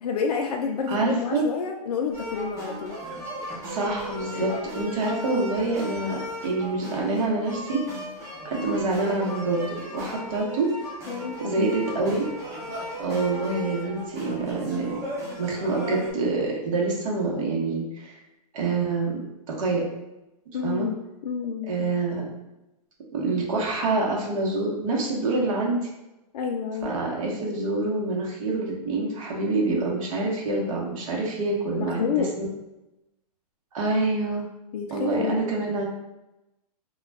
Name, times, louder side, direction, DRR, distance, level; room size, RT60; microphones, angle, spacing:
voice 1, 0.0-3.0 4.3-4.5 11.1-11.7 20.5-20.9 21.2-21.9 26.3-26.9 31.7-32.4 34.7-35.5, left 6 dB, 70° left, 2 dB, 0.4 m, -29 dB
voice 2, 0.9-1.5 3.7-7.8 8.4-10.7 11.4-12.3 13.0-15.0 15.4-18.1 18.5-19.2 19.5-19.8 20.6-20.9 21.7-22.2 23.1-25.9 26.8-32.0 33.7-34.4 34.9-35.9, right 3 dB, 55° right, -2 dB, 1.0 m, -26 dB
sound 1, 2.1-16.1, equal, 15° right, 0.8 m, -36 dB
2.3 x 2.2 x 3.2 m, 0.96 s
hypercardioid pair, 145°, 20 cm